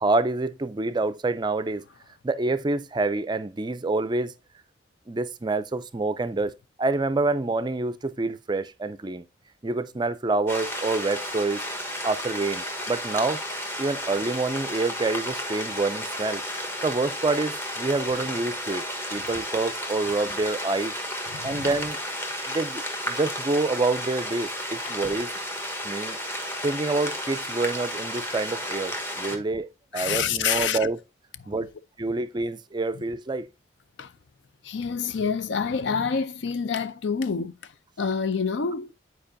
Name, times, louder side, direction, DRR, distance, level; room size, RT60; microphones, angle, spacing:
voice 1, 0.0-1.8 2.2-4.3 5.1-6.5 6.8-9.3 9.6-11.6 12.0-13.4 13.8-16.4 16.8-18.8 19.1-20.9 21.4-22.0 22.5-22.8 23.1-25.3 25.8-26.2 26.6-29.7 29.9-31.0 31.5-31.7 32.0-33.5, right 3 dB, 25° right, 0.4 m, -27 dB
sound 1, 10.5-29.4, equal, 15° left, 1.2 m, -33 dB
voice 2, 21.3-21.7 24.9-25.0 29.9-30.8 33.0-33.1 34.0-34.1 34.6-37.7 38.0-38.9, left 6 dB, 80° left, 0.5 m, -27 dB
9.0 x 4.6 x 2.6 m
head